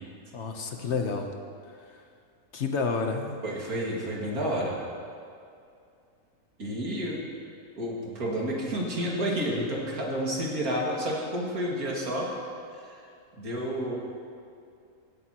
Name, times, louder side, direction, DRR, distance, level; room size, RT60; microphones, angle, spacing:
voice 1, 0.3-1.3 1.9-2.0 2.5-3.4, left 4 dB, 55° left, 4 dB, 1.1 m, -30 dB
voice 2, 3.4-4.7 6.6-7.2 7.8-12.3 12.7-13.0 13.3-14.0, equal, 90° right, -4 dB, 2.7 m, -30 dB
16.5 x 12.5 x 2.9 m, 2.4 s
omnidirectional pair, 1.5 m